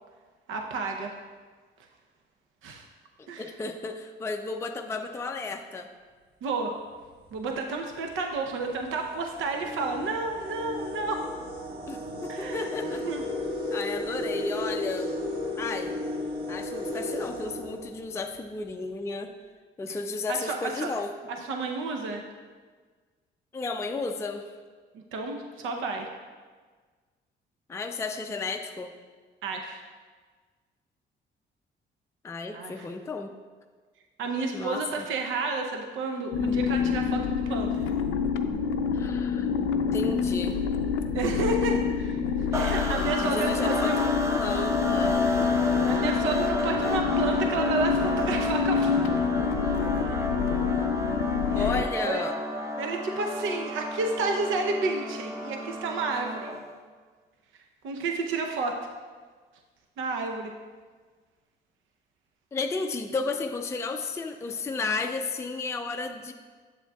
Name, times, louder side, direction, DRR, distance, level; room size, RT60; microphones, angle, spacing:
voice 1, 0.5-1.1 2.6-2.8 3.3-3.5 6.4-6.7 7.3-11.2 12.3-13.2 13.7-13.8 19.9-20.0 20.3-20.9 21.5-22.2 24.9-26.1 29.4-29.8 32.5-32.8 34.2-37.8 41.1-44.1 45.9-49.0 50.0-50.2 51.5-52.2 52.8-56.5 57.8-58.8 60.0-60.5, right 3 dB, 85° right, 3 dB, 0.7 m, -31 dB
voice 2, 3.2-5.9 11.9-13.0 13.7-15.2 15.6-16.0 16.5-19.3 19.8-21.1 23.5-24.5 27.7-28.9 32.2-33.3 34.5-35.1 38.9-39.5 39.9-40.6 43.2-44.0 44.4-45.3 51.5-52.3 62.5-66.3, left 3 dB, 15° left, 5 dB, 0.4 m, -33 dB
sound 1, 7.0-7.3 8.1-8.2 8.6-18.4, left 1 dB, 50° right, 1.5 m, -34 dB
sound 2, 36.3-51.8, left 6 dB, 85° left, 0.5 m, -27 dB
sound 3, 42.5-56.7, left 1 dB, 15° right, 0.7 m, -32 dB
7.9 x 7.3 x 2.3 m, 1.5 s
cardioid pair, 90°, 20 cm